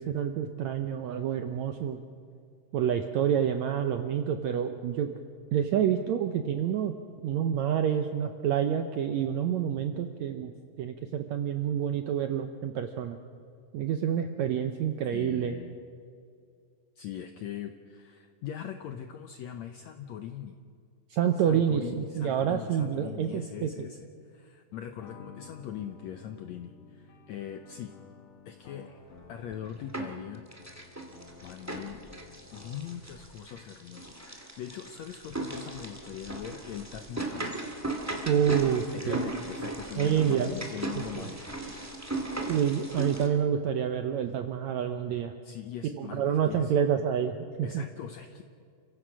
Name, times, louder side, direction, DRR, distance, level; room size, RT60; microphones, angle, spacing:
voice 1, 0.0-2.0 2.7-5.1 5.5-7.0 7.2-10.5 10.8-13.2 13.7-15.5 21.1-23.9 38.3-39.3 40.0-40.6 40.9-41.3 42.5-45.3 45.9-47.8, right 9 dB, 80° right, 7 dB, 1.6 m, -28 dB
voice 2, 15.1-15.8 17.0-20.5 21.4-27.9 28.4-28.9 29.3-30.4 31.4-32.0 32.5-37.6 38.9-42.1 45.4-46.7 47.6-48.4, left 10 dB, 80° left, 7 dB, 1.6 m, -41 dB
sound 1, 25.0-33.0, left 5 dB, 60° left, 2.7 m, -52 dB
sound 2, 29.3-30.2 30.5-43.3, right 2 dB, 5° right, 1.3 m, -37 dB
29.0 x 16.0 x 6.2 m, 2.3 s
omnidirectional pair, 4.1 m